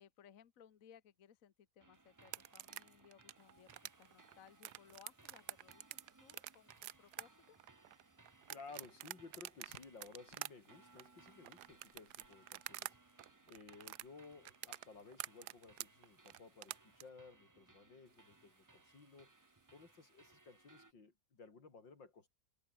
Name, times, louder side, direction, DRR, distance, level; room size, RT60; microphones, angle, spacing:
voice 1, 0.0-7.6, left 8 dB, 50° left, 1.4 m, -63 dB
sound 1, 1.8-20.9, right 3 dB, 30° right, 0.3 m, -66 dB
sound 2, 2.2-12.9 13.2-17.0, right 15 dB, 70° right, 1.0 m, -48 dB
Water tap faucet, 3.3-17.1 18.1-20.9, right 3 dB, 55° right, 4.5 m, -78 dB
voice 2, 8.5-13.1 13.5-19.3 19.7-22.3, left 4 dB, 85° left, 4.4 m, -57 dB
omnidirectional pair, 2.0 m